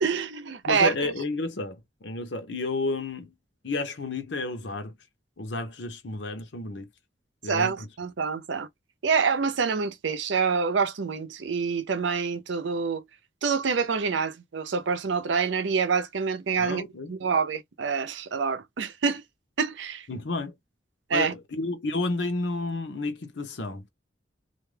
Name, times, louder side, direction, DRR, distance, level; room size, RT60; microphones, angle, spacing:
voice 1, 0.0-1.1 7.4-8.7 9.0-13.0 13.4-19.2 19.6-20.1 21.1-21.3, right 5 dB, 80° right, 0.5 m, -26 dB
voice 2, 0.7-3.3 3.6-4.9 5.4-6.9 7.4-7.9 16.6-17.1 20.1-20.5 21.1-23.9, left 2 dB, 75° left, 0.8 m, -31 dB
2.5 x 2.2 x 3.2 m
head